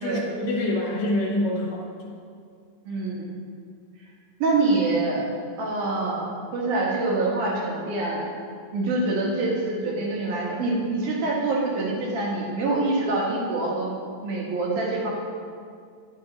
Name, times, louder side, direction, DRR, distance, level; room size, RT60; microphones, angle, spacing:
voice 1, 0.0-2.1, left 1 dB, 50° left, -2 dB, 1.3 m, -26 dB
voice 2, 4.4-5.2 5.6-6.3 6.5-8.2 8.7-13.9 14.2-15.1, right 2 dB, 75° right, -3 dB, 2.8 m, -25 dB
10.5 x 6.0 x 3.8 m, 2.2 s
omnidirectional pair, 3.6 m